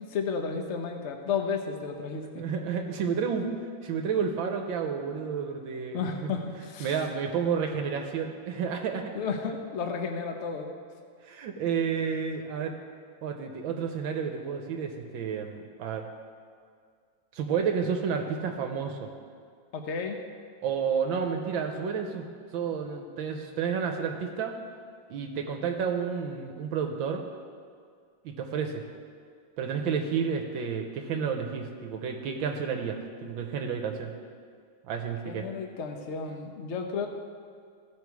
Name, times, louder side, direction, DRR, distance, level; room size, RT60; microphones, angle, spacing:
voice 1, 0.0-2.4 5.9-7.0 9.1-10.7 19.7-20.2 35.2-37.1, left 5 dB, 60° left, 4 dB, 0.7 m, -32 dB
voice 2, 2.4-3.5 3.8-6.3 6.8-9.1 11.2-12.7 13.2-16.1 17.3-19.1 20.6-22.2 22.5-24.6 25.1-27.2 28.2-28.8 29.6-34.1 34.8-35.5, right 6 dB, 75° right, 4 dB, 1.4 m, -31 dB
15.5 x 5.5 x 4.7 m, 2.1 s
omnidirectional pair, 2.2 m